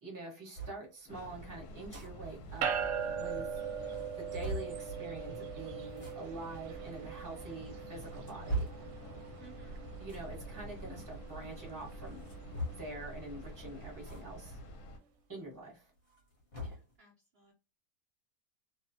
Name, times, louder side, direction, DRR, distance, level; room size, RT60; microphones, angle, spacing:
voice 1, 0.0-2.7 3.2-3.5 4.2-8.7 10.0-12.2 12.7-14.6 15.3-15.9, right 2 dB, 15° right, -2 dB, 0.8 m, -45 dB
sound 1, 0.6-0.8 1.7-2.1 2.4-2.5 2.8-2.9 3.4-3.5 3.9-4.8 5.9-6.1 7.0-7.1 7.8-8.9 10.0-10.3 12.1-13.0 14.0-14.2 14.6-14.7 16.0-16.9, right 1 dB, 40° left, 1.1 m, -39 dB
Train, 1.1-15.0, equal, 70° left, 1.1 m, -48 dB
sound 2, 2.6-14.2, right 7 dB, 85° right, 1.2 m, -41 dB
voice 2, 9.4-9.9 16.6-17.5, right 6 dB, 55° right, -1 dB, 0.6 m, -60 dB
2.8 x 2.1 x 2.6 m, 0.31 s
omnidirectional pair, 1.8 m